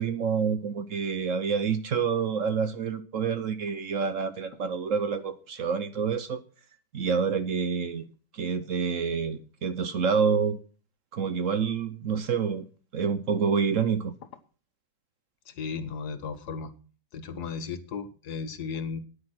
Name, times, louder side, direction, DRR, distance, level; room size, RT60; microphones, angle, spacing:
voice 1, 0.0-6.4 6.9-8.0 8.3-10.6 11.1-12.6 12.9-14.1, right 6 dB, 55° right, 1.1 m, -27 dB
voice 2, 15.5-16.7 17.1-19.0, left 5 dB, 70° left, 1.6 m, -35 dB
9.8 x 9.7 x 6.2 m
omnidirectional pair, 1.8 m